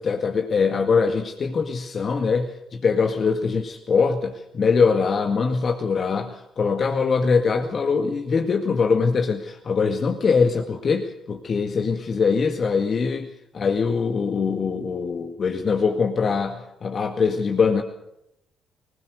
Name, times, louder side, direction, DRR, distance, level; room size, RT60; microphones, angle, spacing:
voice 1, 0.0-17.8, left 5 dB, 50° left, 4 dB, 2.0 m, -22 dB
21.0 x 20.0 x 6.8 m, 0.82 s
hypercardioid pair, 50°, 0 cm